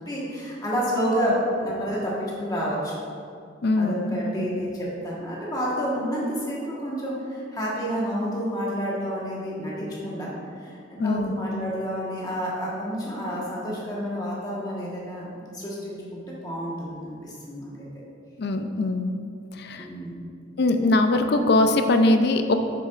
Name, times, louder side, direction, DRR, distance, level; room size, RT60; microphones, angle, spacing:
voice 1, 0.1-2.9 3.8-10.3 10.6-17.9 19.8-20.2, equal, 20° left, -6 dB, 1.3 m, -29 dB
voice 2, 3.6-4.5 11.0-11.3 18.4-19.1 19.6-19.9 20.6-22.6, left 2 dB, 55° left, 7 dB, 0.4 m, -22 dB
7.3 x 6.7 x 2.5 m, 2.4 s
head